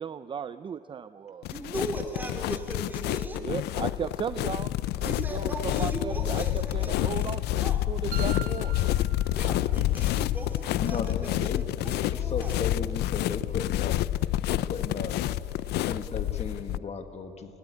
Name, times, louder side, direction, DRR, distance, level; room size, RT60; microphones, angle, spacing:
voice 1, 0.0-1.5 3.4-4.7 5.0-8.8, right 7 dB, 30° right, 12 dB, 0.5 m, -36 dB
sound 1, 1.4-16.8, left 14 dB, 80° left, 0.5 m, -28 dB
voice 2, 1.5-3.5 5.0-7.3 7.6-7.8 9.3-12.6, right 1 dB, 10° right, 2 dB, 3.7 m, -38 dB
sound 2, 8.1-10.1, right 9 dB, 60° right, 1.3 m, -42 dB
voice 3, 10.8-14.0 14.5-15.1 15.8-17.6, left 5 dB, 40° left, 7 dB, 1.5 m, -36 dB
18.5 x 18.0 x 9.8 m, 2.6 s
cardioid pair, 110°, 17 cm